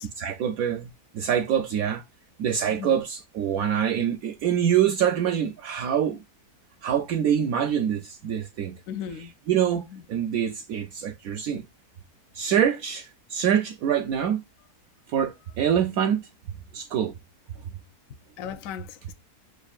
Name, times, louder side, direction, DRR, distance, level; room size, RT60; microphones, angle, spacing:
voice 1, 0.2-2.0 2.4-6.2 6.8-8.8 9.2-11.6 12.3-14.4 15.1-17.1 17.5-17.8, right 9 dB, 70° right, 0.9 m, -25 dB
voice 2, 8.9-9.3 9.8-9.9 18.4-19.1, left 8 dB, 65° left, 0.9 m, -36 dB
6.2 x 2.3 x 2.4 m
omnidirectional pair, 1.7 m